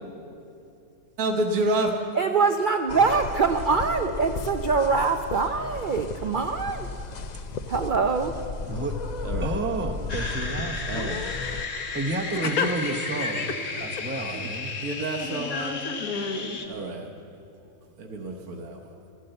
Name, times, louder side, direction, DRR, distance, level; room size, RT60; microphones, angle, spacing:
voice 1, 1.2-1.9 9.2-9.6 10.8-11.3 14.8-15.7 16.7-17.1 18.0-18.9, right 2 dB, 70° right, 1.5 m, -29 dB
voice 2, 2.2-6.9 7.7-8.4, right 4 dB, 85° right, 0.4 m, -24 dB
sound 1, 2.9-11.6, left 4 dB, 80° left, 0.3 m, -34 dB
voice 3, 9.4-11.0 11.9-13.5 13.8-14.7, right 2 dB, 10° right, 0.7 m, -31 dB
sound 2, 10.1-16.7, left 4 dB, 45° left, 1.4 m, -34 dB
voice 4, 12.3-13.9 15.1-16.6, left 4 dB, 65° left, 1.7 m, -31 dB
13.0 x 12.5 x 7.9 m
omnidirectional pair, 1.7 m